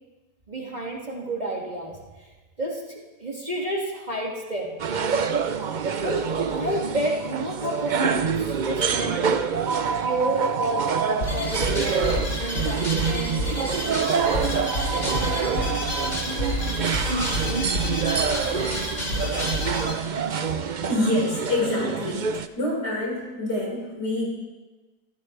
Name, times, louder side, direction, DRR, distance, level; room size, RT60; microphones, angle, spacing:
voice 1, 0.5-2.0 2.6-4.8 6.0-9.4 10.0-10.8 11.1-13.5, right 1 dB, 25° right, -3 dB, 2.3 m, -30 dB
sound 1, 4.8-22.5, right 6 dB, 90° right, 0.4 m, -26 dB
sound 2, 11.2-19.9, left 1 dB, 45° left, 2.8 m, -29 dB
voice 2, 20.9-22.3 22.6-24.3, left 1 dB, 75° left, -4 dB, 5.6 m, -26 dB
26.0 x 15.0 x 3.3 m, 1.2 s
omnidirectional pair, 1.8 m